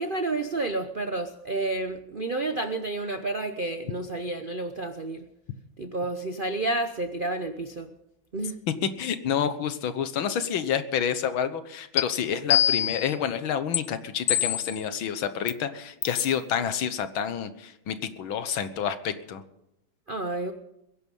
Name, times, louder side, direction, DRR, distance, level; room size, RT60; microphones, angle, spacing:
voice 1, 0.0-5.2 5.8-7.9 8.3-8.6 20.1-20.5, right 2 dB, 55° right, 7 dB, 0.5 m, -30 dB
voice 2, 9.0-19.4, left 8 dB, 80° left, 12 dB, 1.9 m, -29 dB
sound 1, 12.0-12.1 12.5-13.1 13.7-13.8 14.3-14.8 15.5-15.6 16.0-16.2, left 10 dB, 65° left, 0.8 m, -24 dB
21.5 x 11.0 x 5.4 m, 0.84 s
omnidirectional pair, 2.2 m